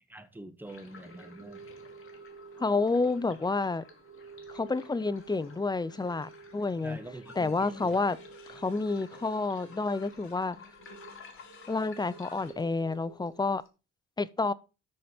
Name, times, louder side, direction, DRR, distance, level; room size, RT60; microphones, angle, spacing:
voice 1, 0.1-1.6 6.8-8.0, right 1 dB, 5° right, 1.4 m, -45 dB
sound 1, 0.6-13.7, left 5 dB, 45° left, 2.9 m, -55 dB
sound 2, 0.9-13.3, right 5 dB, 55° right, 1.9 m, -51 dB
voice 2, 2.6-3.8 4.5-7.0 7.4-8.2 8.5-10.6 11.7-13.6 14.2-14.5, left 3 dB, 15° left, 0.6 m, -29 dB
sound 3, 7.2-12.6, left 7 dB, 70° left, 2.1 m, -55 dB
13.0 x 5.1 x 4.4 m
cardioid pair, 90°, 30 cm